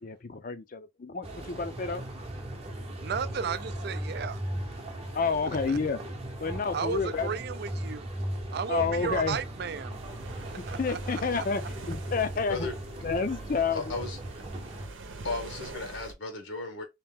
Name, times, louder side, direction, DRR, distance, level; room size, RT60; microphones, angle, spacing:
voice 1, 0.0-2.0 5.1-6.0 6.4-7.3 8.7-9.4 10.5-12.7 13.0-13.9, left 5 dB, 45° left, 0.5 m, -30 dB
sound 1, 1.2-14.9, right 1 dB, 30° right, 0.8 m, -38 dB
voice 2, 3.0-4.4 5.7-5.8 6.7-8.1 8.5-10.0 10.5-11.4, right 6 dB, 55° right, 0.4 m, -34 dB
sound 2, 9.9-16.1, right 3 dB, 85° right, 0.8 m, -44 dB
voice 3, 12.5-12.8 13.7-14.2 15.2-16.8, left 3 dB, 85° left, 1.3 m, -35 dB
3.1 x 2.9 x 3.5 m
head